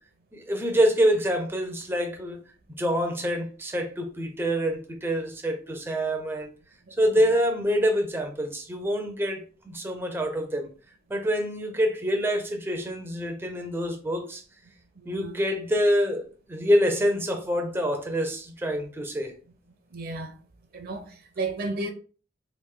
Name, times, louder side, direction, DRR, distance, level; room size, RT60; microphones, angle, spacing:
voice 1, 0.3-2.4 2.8-6.5 7.0-10.7 11.1-14.4 15.1-16.2 16.5-19.3, equal, 10° right, 0.5 m, -26 dB
voice 2, 15.0-15.3 19.9-20.4 20.7-21.9, right 3 dB, 55° right, 0.6 m, -33 dB
3.2 x 2.5 x 3.6 m
head